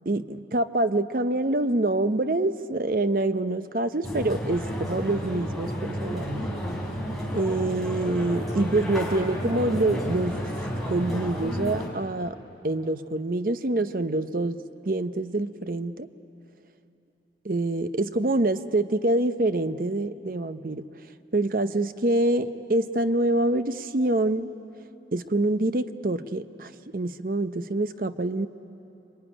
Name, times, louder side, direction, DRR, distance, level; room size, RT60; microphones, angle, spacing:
voice 1, 0.0-6.5 7.3-10.4 10.9-12.4 12.6-16.1 17.4-20.9 21.3-24.5 25.1-28.5, right 2 dB, 50° right, 11 dB, 0.7 m, -26 dB
sound 1, 4.0-11.9, equal, ahead, 3.8 m, -31 dB
26.5 x 22.5 x 9.9 m, 2.9 s
head